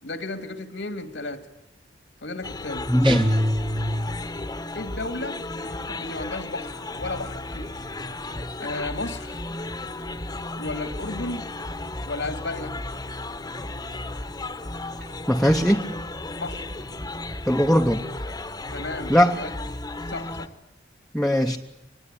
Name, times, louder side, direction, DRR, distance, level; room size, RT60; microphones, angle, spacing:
voice 1, 0.0-1.5 2.2-2.9 4.7-7.8 8.6-9.4 10.6-11.5 12.1-12.8 16.3-16.7 18.7-19.5 20.1-20.5, left 2 dB, 85° left, 8 dB, 2.1 m, -34 dB
sound 1, 2.4-20.5, left 2 dB, 20° left, 1.1 m, -34 dB
voice 2, 2.9-3.2 15.3-15.9 17.5-18.0 19.1-19.3 21.1-21.6, equal, 5° left, 1 dB, 0.9 m, -19 dB
sound 2, 3.0-4.4, equal, 30° right, 1.5 m, -25 dB
25.5 x 20.0 x 9.8 m, 0.96 s
head